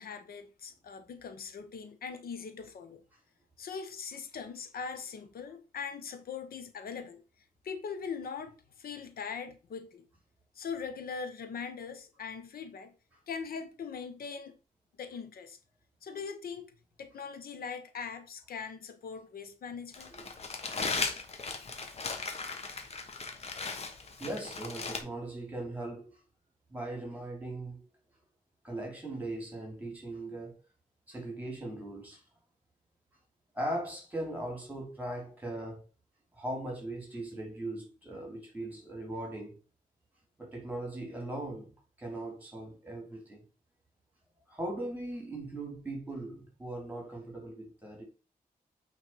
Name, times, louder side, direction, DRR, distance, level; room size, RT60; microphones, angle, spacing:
voice 1, 0.0-3.0 3.6-7.2 7.6-10.0 10.5-12.9 13.3-14.5 15.0-15.6 16.0-16.7 17.0-20.1, left 6 dB, 80° left, 1.0 m, -41 dB
Crumpling crinkling, 19.9-25.0, left 4 dB, 45° left, 1.2 m, -37 dB
voice 2, 24.2-26.1 26.7-27.8 28.6-30.6 31.1-32.2 33.5-35.8 36.3-39.6 40.4-41.7 42.0-43.4 44.5-48.0, right 1 dB, 10° right, 2.9 m, -39 dB
8.9 x 3.5 x 4.5 m
wide cardioid pair, 155°, 15 cm